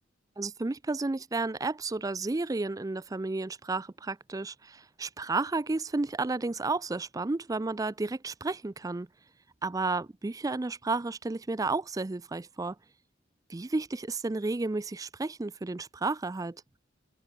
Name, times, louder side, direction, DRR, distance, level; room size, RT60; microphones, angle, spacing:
voice 1, 0.4-9.1 9.6-12.8 13.5-16.6, right 3 dB, 20° right, 0.4 m, -32 dB
head